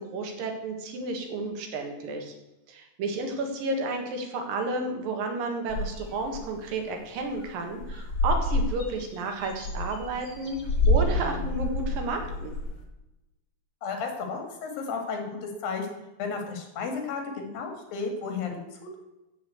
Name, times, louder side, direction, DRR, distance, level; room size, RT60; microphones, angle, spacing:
voice 1, 0.0-2.3 2.7-10.6 10.9-12.5, right 2 dB, 80° right, 4 dB, 3.4 m, -32 dB
sound 1, 5.7-6.5 6.9-7.0 7.2-7.5 7.8-12.8, left 1 dB, 45° left, 2.1 m, -28 dB
voice 2, 13.8-19.0, left 4 dB, 85° left, 4 dB, 3.8 m, -33 dB
13.5 x 5.5 x 7.9 m, 0.98 s
omnidirectional pair, 4.0 m